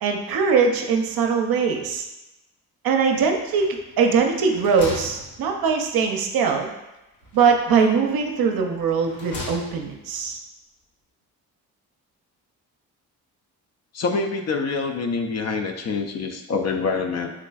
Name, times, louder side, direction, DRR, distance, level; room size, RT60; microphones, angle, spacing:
voice 1, 0.0-2.0 2.8-6.7 7.3-10.4, right 5 dB, 65° right, 3 dB, 0.6 m, -21 dB
sound 1, 3.5-4.0 4.3-6.0 7.2-8.1 8.8-10.0, left 2 dB, 85° left, 0.9 m, -38 dB
voice 2, 13.9-17.3, left 4 dB, 45° left, 5 dB, 0.4 m, -26 dB
3.6 x 3.2 x 2.3 m, 0.96 s
supercardioid pair, 55°, 39 cm